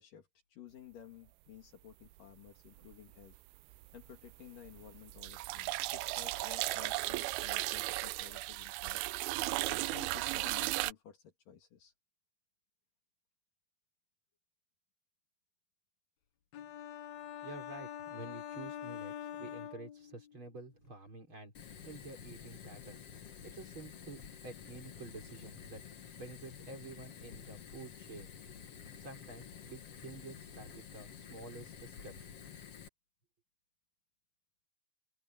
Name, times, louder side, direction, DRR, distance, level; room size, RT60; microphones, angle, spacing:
voice 1, 0.0-3.4 3.9-9.0 9.7-11.9, left 10 dB, 65° left, 3.6 m, -54 dB
sound 1, 2.8-3.4 3.7-10.9, right 20 dB, 85° right, 2.4 m, -36 dB
sound 2, 16.5-20.4, left 10 dB, 90° left, 3.6 m, -45 dB
voice 2, 17.4-23.0 23.4-25.8 26.2-28.4 29.0-32.3, right 3 dB, 30° right, 5.7 m, -49 dB
Fire, 21.5-32.9, left 7 dB, 50° left, 2.3 m, -50 dB
open air
omnidirectional pair, 4.3 m